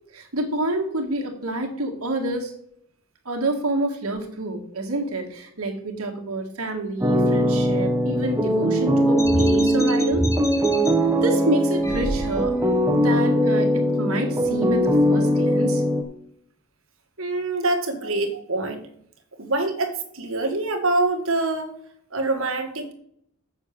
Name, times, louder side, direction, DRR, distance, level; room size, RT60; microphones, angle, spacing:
voice 1, 0.1-2.5 3.3-10.3 11.2-12.5 12.9-15.8, right 1 dB, 80° right, 2 dB, 1.9 m, -28 dB
sound 1, 7.0-16.0, equal, 15° right, 0.9 m, -21 dB
sound 2, 9.2-10.9 11.8-12.7, equal, 15° left, 1.2 m, -27 dB
voice 2, 17.2-18.9 19.3-21.7 22.1-22.9, right 2 dB, 65° right, 6 dB, 1.6 m, -25 dB
7.4 x 6.3 x 6.7 m, 0.68 s
head